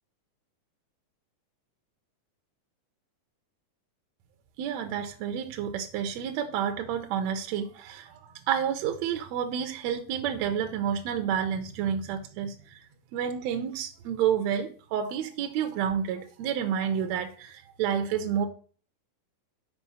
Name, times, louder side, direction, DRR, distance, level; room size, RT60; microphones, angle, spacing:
voice 1, 4.6-12.9 13.1-18.5, right 8 dB, 75° right, 1.8 m, -30 dB
5.7 x 5.3 x 5.6 m
omnidirectional pair, 3.5 m